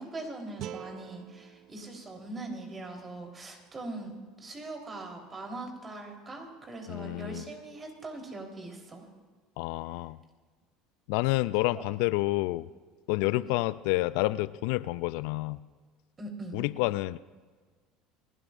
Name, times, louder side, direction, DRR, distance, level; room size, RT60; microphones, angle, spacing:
voice 1, 0.0-9.1 11.7-11.8 13.2-13.4 16.2-16.6, right 2 dB, 30° right, 2 dB, 3.8 m, -41 dB
sound 1, 0.6-3.7, right 12 dB, 55° right, 0.5 m, -47 dB
voice 2, 6.9-7.4 9.6-10.2 11.1-12.7 13.1-15.6 16.5-17.2, left 20 dB, 70° left, 17 dB, 0.3 m, -29 dB
29.5 x 12.0 x 2.6 m, 1.5 s
hypercardioid pair, 75°, 0 cm